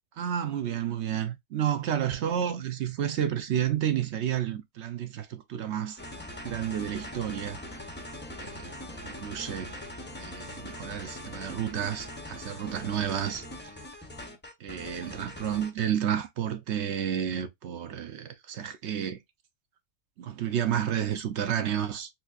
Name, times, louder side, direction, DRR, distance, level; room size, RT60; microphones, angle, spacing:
voice 1, 0.2-6.0 6.4-7.6 8.4-8.8 9.0-9.8 10.2-13.4 14.6-19.2 20.2-22.1, right 9 dB, 65° right, 0.8 m, -31 dB
sound 1, 6.0-15.8, left 1 dB, 15° left, 0.4 m, -42 dB
4.1 x 2.7 x 2.3 m
omnidirectional pair, 1.4 m